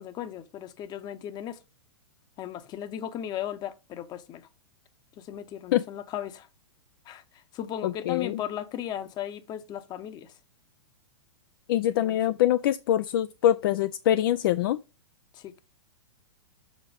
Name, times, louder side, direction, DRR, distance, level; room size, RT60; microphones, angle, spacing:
voice 1, 0.0-1.6 2.4-4.5 5.2-6.5 7.1-7.2 7.5-10.3 11.9-12.4 15.3-15.6, left 10 dB, 30° left, 0.8 m, -36 dB
voice 2, 7.8-8.4 11.7-14.8, left 12 dB, 50° left, 0.4 m, -24 dB
7.4 x 4.0 x 5.1 m
hypercardioid pair, 110°, 14 cm